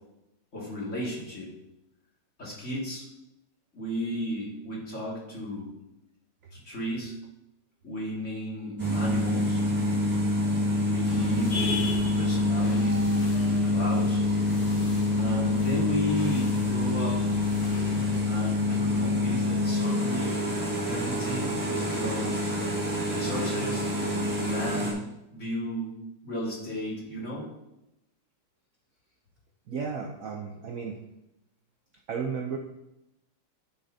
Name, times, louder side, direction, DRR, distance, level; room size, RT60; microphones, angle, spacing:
voice 1, 0.5-1.5 2.4-3.1 3.7-5.7 6.6-7.1 7.8-9.6 10.8-14.2 15.2-17.2 18.3-20.4 20.9-22.5 23.1-23.8 24.4-25.0 25.3-25.9 26.2-27.5, equal, 35° left, -5 dB, 2.4 m, -34 dB
sound 1, 8.8-24.9, left 1 dB, 10° right, 1.4 m, -26 dB
sound 2, 11.0-18.2, left 3 dB, 55° left, 0.6 m, -39 dB
voice 2, 29.7-31.0 32.1-32.6, right 6 dB, 65° right, 1 dB, 0.8 m, -33 dB
11.0 x 6.7 x 2.8 m, 0.90 s
omnidirectional pair, 2.3 m